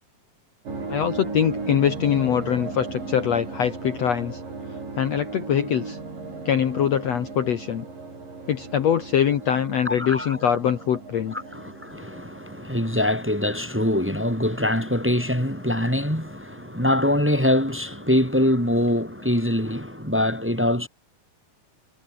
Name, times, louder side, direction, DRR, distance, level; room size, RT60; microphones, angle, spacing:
sound 1, 0.7-20.3, right 3 dB, 70° right, 9.6 m, -38 dB
voice 1, 0.9-4.4 5.0-6.0 6.5-7.9 8.5-11.3, left 9 dB, 55° left, 2.3 m, -23 dB
voice 2, 9.8-10.4 11.3-20.9, left 1 dB, 5° right, 3.2 m, -23 dB
omnidirectional pair, 4.1 m